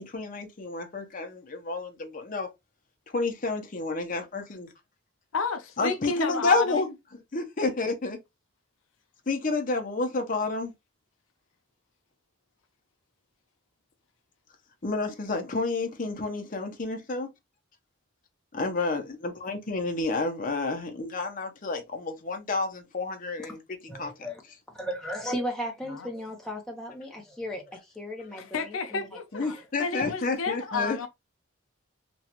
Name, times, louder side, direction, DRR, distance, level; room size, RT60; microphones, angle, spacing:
voice 1, 0.0-2.5 3.1-4.7 5.8-6.9 7.3-8.2 9.3-10.7 14.8-17.3 18.5-23.6 24.0-24.1 29.3-31.0, left 3 dB, 40° left, 0.7 m, -30 dB
voice 2, 5.3-6.9 25.9-26.1 28.4-31.1, left 4 dB, 85° left, 0.6 m, -31 dB
voice 3, 23.9-24.4 24.7-29.0 29.4-29.6, equal, 5° left, 0.7 m, -36 dB
3.0 x 2.3 x 2.9 m
head